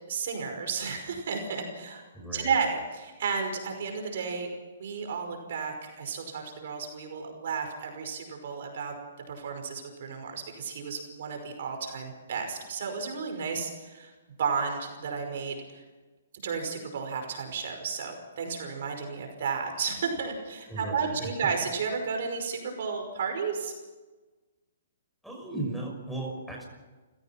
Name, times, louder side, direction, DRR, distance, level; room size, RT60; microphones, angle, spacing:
voice 1, 0.1-2.0 2.3-4.5 4.8-8.9 9.3-14.1 14.4-15.8 16.4-23.7, right 5 dB, 60° right, 4 dB, 5.3 m, -33 dB
voice 2, 2.1-2.6 20.7-21.5 25.2-26.7, right 2 dB, ahead, -1 dB, 6.2 m, -36 dB
29.0 x 16.5 x 5.9 m, 1.2 s
hypercardioid pair, 145°, 0 cm